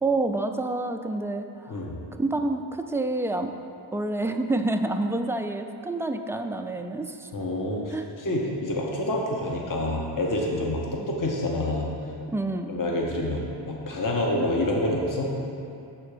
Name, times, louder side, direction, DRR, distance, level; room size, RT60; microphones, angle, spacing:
voice 1, 0.0-1.8 2.2-3.5 3.9-7.3 7.9-8.1 11.0-11.1 12.3-12.7, right 2 dB, 5° right, 6 dB, 0.3 m, -28 dB
voice 2, 7.3-11.9 12.7-15.3, left 1 dB, 40° left, -1 dB, 1.1 m, -27 dB
6.9 x 4.3 x 6.6 m, 2.7 s
cardioid pair, 70°, 47 cm